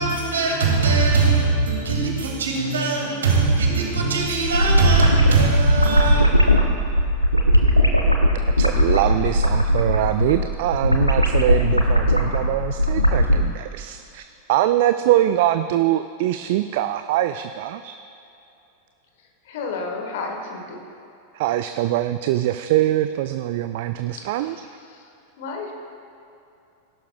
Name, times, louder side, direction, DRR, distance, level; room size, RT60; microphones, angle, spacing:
voice 1, 0.0-6.3, right 4 dB, 65° right, 0 dB, 2.2 m, -20 dB
sound 1, 4.2-13.4, equal, 90° left, 0.8 m, -18 dB
voice 2, 8.6-18.0 21.3-24.6, right 13 dB, 50° right, 10 dB, 0.3 m, -23 dB
voice 3, 19.5-20.8 24.2-24.5 24.9-25.0 25.4-25.7, left 4 dB, 55° left, 2 dB, 1.7 m, -32 dB
18.0 x 11.5 x 2.3 m, 2.7 s
figure-of-eight pair, 90°, 0 cm